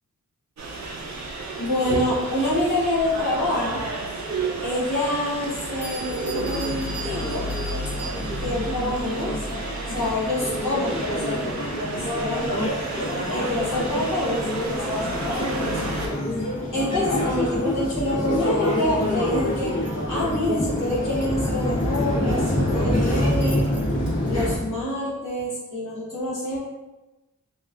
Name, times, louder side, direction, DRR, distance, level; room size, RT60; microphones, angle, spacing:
sound 1, 0.6-16.1, right 2 dB, 60° right, 0.5 m, -32 dB
voice 1, 1.6-3.8 4.6-7.4 7.8-7.9 8.4-9.6 9.9-12.4 13.3-23.7 24.3-26.6, left 1 dB, 75° left, -9 dB, 1.2 m, -27 dB
Bell, 5.8-8.6, right 4 dB, 35° left, 1.4 m, -39 dB
sound 2, 6.3-24.6, left 1 dB, 55° left, 1.3 m, -27 dB
2.9 x 2.3 x 2.4 m, 1.1 s
cardioid pair, 55°, 31 cm